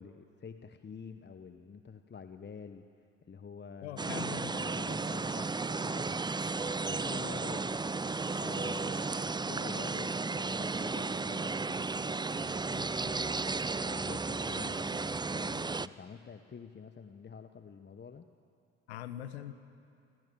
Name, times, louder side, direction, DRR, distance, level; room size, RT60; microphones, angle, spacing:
voice 1, 0.0-2.9 3.2-4.1 4.4-6.4 6.8-7.8 8.3-13.5 13.8-18.3, left 6 dB, 30° left, 9 dB, 1.3 m, -48 dB
voice 2, 3.8-4.5 18.9-19.5, left 12 dB, 80° left, 12 dB, 1.2 m, -41 dB
sound 1, 4.0-15.9, right 3 dB, 15° right, 0.6 m, -34 dB
28.5 x 26.0 x 7.7 m, 2.4 s
figure-of-eight pair, 45°, 33 cm